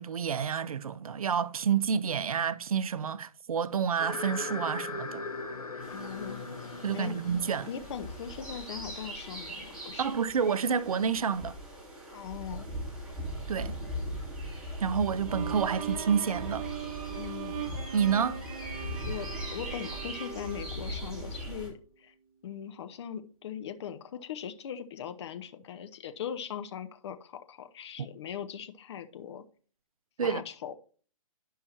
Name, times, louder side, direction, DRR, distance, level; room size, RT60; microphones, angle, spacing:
voice 1, 0.0-5.2 6.8-7.7 10.0-11.6 13.5-13.7 14.8-16.7 17.9-18.4 28.0-28.1 30.2-30.4, right 7 dB, 75° right, 0.5 m, -29 dB
sound 1, 4.0-9.8, left 3 dB, 90° left, 1.0 m, -40 dB
sound 2, 5.8-21.7, equal, 5° right, 3.2 m, -40 dB
voice 2, 5.9-6.4 6.9-7.2 7.7-10.1 12.1-12.7 17.1-17.6 19.1-22.1 22.4-29.4 30.2-30.8, left 8 dB, 50° left, 0.7 m, -40 dB
Bowed string instrument, 15.3-21.5, right 8 dB, 25° right, 1.8 m, -40 dB
11.5 x 5.5 x 2.9 m
hypercardioid pair, 135°, 18 cm